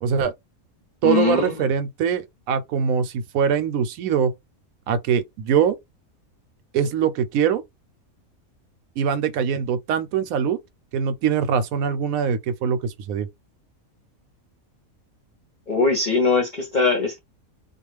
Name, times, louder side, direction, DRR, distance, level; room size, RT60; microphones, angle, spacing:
voice 1, 0.0-0.3 1.0-4.3 4.9-5.8 6.7-7.6 9.0-10.6 10.9-13.3, right 7 dB, 80° right, 1.0 m, -22 dB
voice 2, 1.0-1.5 15.7-17.2, left 4 dB, 45° left, 0.6 m, -21 dB
2.4 x 2.4 x 3.1 m
omnidirectional pair, 1.5 m